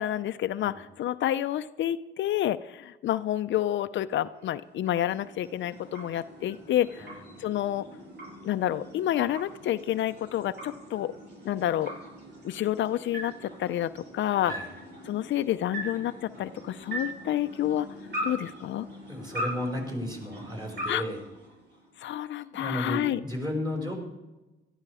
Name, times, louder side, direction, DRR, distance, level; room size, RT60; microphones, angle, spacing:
voice 1, 0.0-7.1 7.4-7.8 8.4-11.1 11.4-11.9 12.4-14.5 15.1-17.9 18.2-18.9 20.9-21.0 22.0-23.2, left 12 dB, 70° left, 11 dB, 0.6 m, -29 dB
sound 1, 4.3-22.1, equal, 60° right, 6.2 m, -41 dB
voice 2, 19.1-21.2 22.5-23.9, left 1 dB, 20° right, 0 dB, 5.4 m, -33 dB
17.5 x 13.0 x 4.9 m, 1.1 s
cardioid pair, 90°, 20 cm